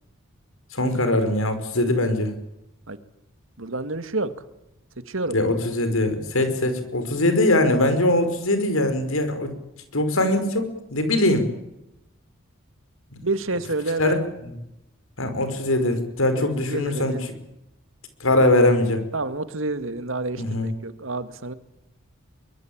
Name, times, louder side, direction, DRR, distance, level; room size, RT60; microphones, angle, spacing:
voice 1, 0.7-2.3 5.3-9.5 9.9-11.5 14.0-14.2 15.2-17.2 18.2-19.0 20.4-20.7, left 1 dB, 80° left, 9 dB, 5.4 m, -21 dB
voice 2, 3.6-4.3 5.1-5.4 13.2-14.2 16.7-17.2 19.1-21.5, right 2 dB, 65° right, 11 dB, 2.1 m, -28 dB
24.0 x 22.5 x 8.9 m, 0.88 s
head